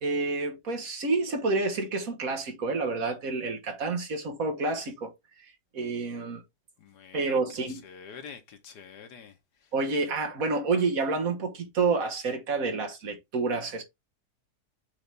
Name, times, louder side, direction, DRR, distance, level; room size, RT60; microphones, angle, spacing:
voice 1, 0.0-5.1 5.7-6.4 7.1-7.8 9.7-13.8, right 3 dB, 60° right, 1.7 m, -29 dB
voice 2, 6.8-7.3 7.7-9.7, left 6 dB, 90° left, 1.7 m, -47 dB
7.1 x 4.0 x 3.4 m
omnidirectional pair, 1.7 m